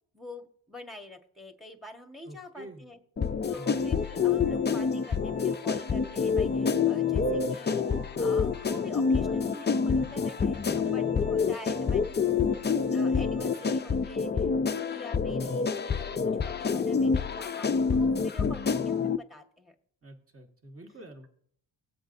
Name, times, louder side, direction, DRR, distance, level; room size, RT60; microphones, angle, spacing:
voice 1, 0.1-3.0 3.5-12.2 12.9-19.7, left 2 dB, ahead, 4 dB, 1.5 m, -47 dB
voice 2, 2.2-2.8 3.5-3.8 10.7-11.0 20.0-21.3, right 1 dB, 30° right, 2 dB, 2.0 m, -47 dB
sound 1, 3.2-19.2, left 5 dB, 25° left, 0.5 m, -27 dB
Organ, 3.6-14.3, right 3 dB, 80° right, 4.7 m, -54 dB
19.0 x 7.7 x 2.7 m, 0.63 s
cardioid pair, 85°, 46 cm